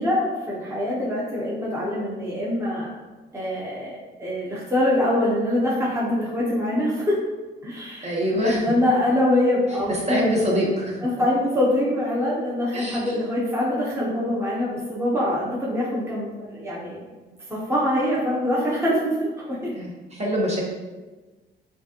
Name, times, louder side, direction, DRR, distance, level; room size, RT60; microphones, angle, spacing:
voice 1, 0.0-2.9 3.3-7.2 7.6-10.3 11.0-17.0 17.5-19.7, left 1 dB, 15° right, -6 dB, 1.1 m, -24 dB
voice 2, 8.0-8.6 10.1-10.9 12.7-13.2 19.8-20.6, equal, 35° right, -4 dB, 1.2 m, -24 dB
5.9 x 2.5 x 3.0 m, 1.3 s
cardioid pair, 90°, 20 cm